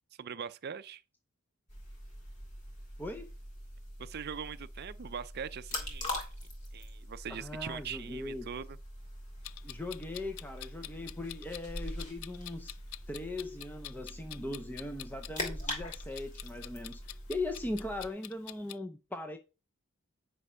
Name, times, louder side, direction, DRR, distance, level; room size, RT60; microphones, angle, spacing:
voice 1, 0.2-1.0 4.0-6.2 6.7-8.8, right 7 dB, 50° right, 0.5 m, -41 dB
sound 1, 1.7-18.1, left 1 dB, 35° left, 2.9 m, -43 dB
voice 2, 3.0-3.3 7.3-8.5 9.6-12.7 13.1-17.0 17.3-19.4, left 2 dB, 10° left, 0.6 m, -39 dB
Clock, 9.4-18.8, left 16 dB, 70° left, 0.4 m, -47 dB
9.7 x 4.3 x 5.5 m
head